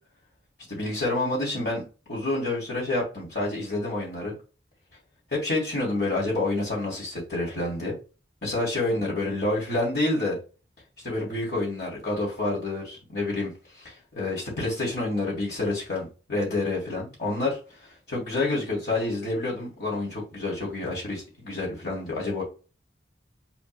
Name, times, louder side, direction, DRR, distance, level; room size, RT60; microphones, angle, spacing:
voice 1, 0.7-4.4 5.3-8.0 8.4-10.4 11.0-22.4, left 2 dB, 60° left, -4 dB, 1.9 m, -28 dB
6.9 x 3.0 x 2.5 m, 0.34 s
head